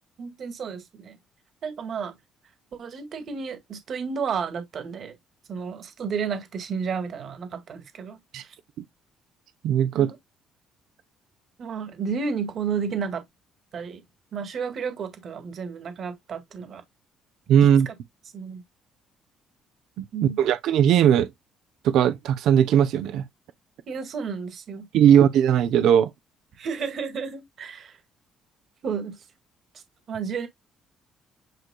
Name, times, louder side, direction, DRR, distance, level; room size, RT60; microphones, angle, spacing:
voice 1, 0.2-1.2 1.6-2.1 2.7-5.2 5.5-8.6 9.9-10.1 11.6-13.2 13.7-14.0 14.3-16.8 17.9-18.0 18.3-18.6 20.1-20.4 23.9-24.8 26.6-28.0 28.8-29.2 30.1-30.5, right 6 dB, 45° right, 1.8 m, -32 dB
voice 2, 9.6-10.1 17.5-17.9 20.0-20.1 20.4-21.3 21.8-23.2 24.9-26.1, right 9 dB, 70° right, 0.8 m, -18 dB
9.3 x 4.7 x 2.3 m
cardioid pair, 160°, 0 cm